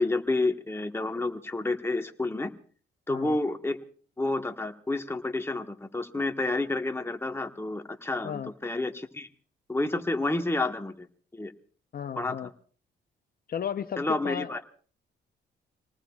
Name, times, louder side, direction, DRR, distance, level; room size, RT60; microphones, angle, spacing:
voice 1, 0.0-2.5 3.1-3.8 4.2-9.3 9.7-11.1 11.3-11.5 12.2-12.5 14.0-14.6, left 2 dB, 10° left, 5 dB, 1.3 m, -29 dB
voice 2, 11.9-12.5 13.5-14.6, left 8 dB, 50° left, 9 dB, 0.8 m, -34 dB
27.0 x 19.0 x 2.4 m, 0.43 s
cardioid pair, 90°, 20 cm